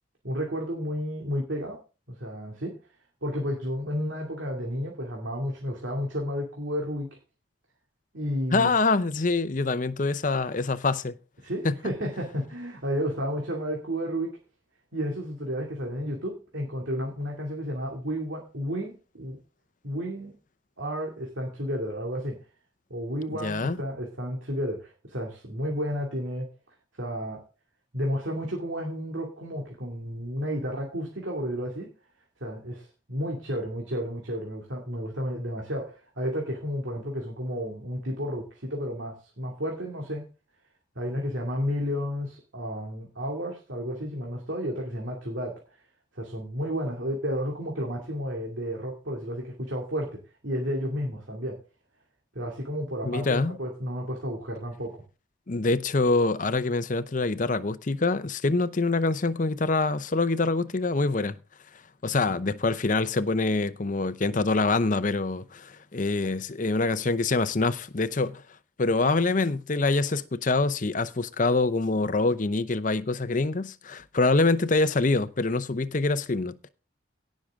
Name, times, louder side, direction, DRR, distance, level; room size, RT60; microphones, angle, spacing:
voice 1, 0.2-1.8 2.1-2.8 3.2-7.2 8.1-8.7 11.4-14.4 14.9-19.4 19.8-20.3 20.8-22.4 22.9-26.5 27.0-27.4 27.9-31.9 32.4-40.3 41.0-45.6 46.1-51.6 52.3-55.0, equal, 70° right, 2.4 m, -32 dB
voice 2, 8.5-11.1 11.6-11.7 23.3-23.8 53.0-53.6 55.5-61.4 62.0-68.4 68.8-76.7, left 3 dB, 40° left, 0.6 m, -25 dB
17.5 x 6.4 x 3.6 m
head